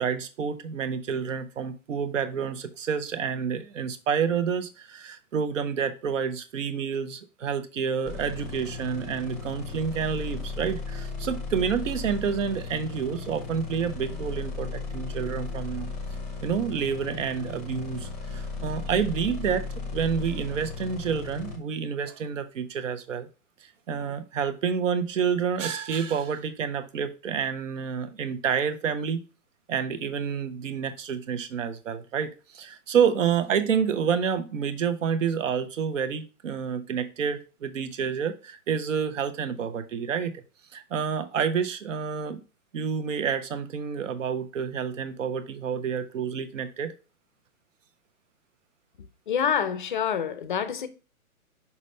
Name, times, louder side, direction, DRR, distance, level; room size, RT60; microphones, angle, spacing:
voice 1, 0.0-15.9 16.4-23.3 23.9-29.2 29.7-40.3 40.7-42.4 42.7-46.9, right 7 dB, 60° right, 1.0 m, -29 dB
sound 1, 8.1-21.6, left 4 dB, ahead, 0.8 m, -36 dB
voice 2, 49.3-50.9, left 8 dB, 35° left, 0.6 m, -27 dB
6.1 x 5.6 x 3.3 m
hypercardioid pair, 165°, 43 cm